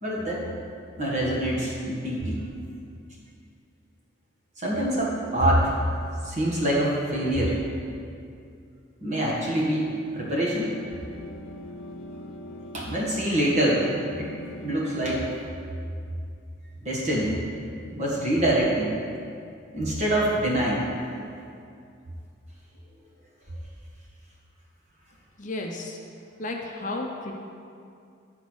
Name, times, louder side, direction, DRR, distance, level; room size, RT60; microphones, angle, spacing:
voice 1, 0.0-0.5 1.0-2.4 4.6-5.8 6.2-7.6 9.0-10.7 12.7-14.3 14.6-15.3 16.8-17.4 17.9-18.9 19.7-20.8, right 1 dB, 35° right, -5 dB, 1.7 m, -25 dB
sound 1, 10.4-15.4, left 1 dB, 85° left, 0.7 m, -41 dB
voice 2, 25.4-26.0 26.4-27.3, left 2 dB, 40° left, 1 dB, 0.6 m, -33 dB
10.0 x 4.1 x 6.3 m, 2.5 s
head